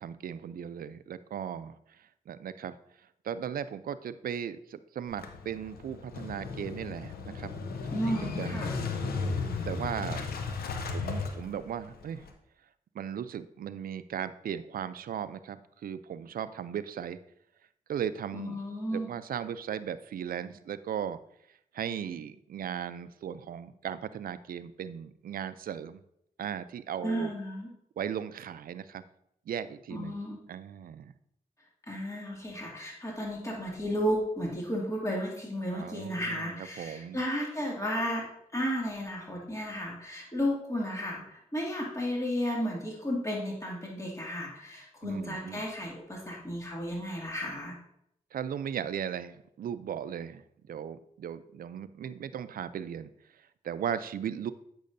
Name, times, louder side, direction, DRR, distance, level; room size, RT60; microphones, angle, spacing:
voice 1, 0.0-2.8 3.2-7.5 7.9-8.6 9.6-10.3 10.9-12.2 12.9-17.2 17.9-18.6 18.9-21.2 21.7-26.0 26.4-27.3 28.0-29.0 29.5-30.2 30.5-31.1 35.7-37.2 45.0-45.6 48.3-53.1 53.6-54.5, right 8 dB, 70° right, 14 dB, 0.4 m, -37 dB
Motorcycle / Engine starting, 5.1-12.3, left 4 dB, 90° left, 0.8 m, -35 dB
voice 2, 7.9-8.7 18.3-19.1 27.0-27.7 29.9-30.4 31.9-47.8, equal, 20° left, -3 dB, 2.2 m, -33 dB
8.4 x 6.2 x 2.6 m, 0.74 s
cardioid pair, 55°, 15 cm